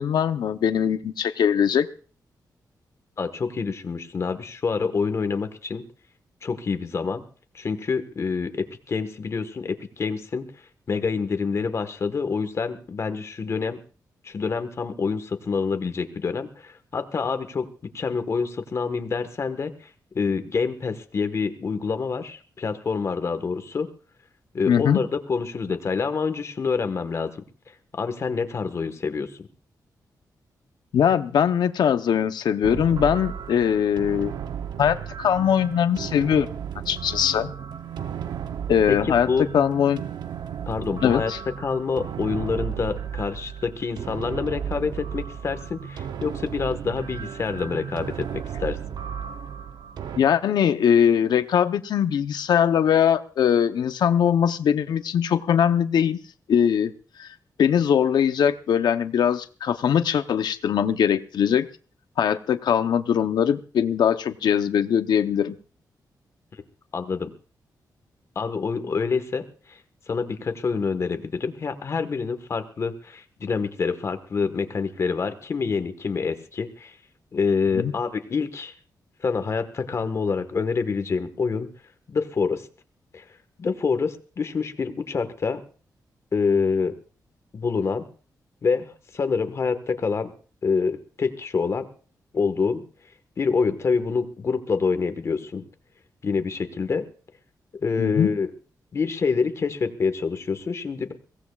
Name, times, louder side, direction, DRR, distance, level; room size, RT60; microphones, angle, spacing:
voice 1, 0.0-1.9 24.7-25.0 30.9-34.3 34.8-36.5 36.9-37.5 38.7-39.3 39.5-40.0 41.0-41.4 50.2-56.2 56.5-56.9 57.2-57.3 57.6-61.7 62.2-65.5 77.8-77.9 98.0-98.3, left 8 dB, 90° left, 10 dB, 0.8 m, -21 dB
voice 2, 3.2-5.8 6.4-7.2 7.5-10.5 10.9-13.8 14.2-17.7 17.9-19.9 20.1-23.9 24.5-27.4 27.9-29.5 38.9-39.4 40.7-41.3 41.6-48.8 66.9-67.3 68.3-69.8 70.1-77.0 77.3-78.7 79.2-81.7 82.1-82.7 83.1-83.2 83.6-85.6 86.3-86.9 87.5-88.0 88.6-90.3 90.6-91.9 92.3-92.8 93.4-95.6 96.2-97.1 97.8-98.5 98.9-101.1, left 5 dB, 40° left, 9 dB, 1.4 m, -26 dB
sound 1, 32.6-50.2, right 8 dB, 85° right, 0.8 m, -34 dB
23.0 x 17.0 x 2.4 m, 0.40 s
wide cardioid pair, 150°, 7 cm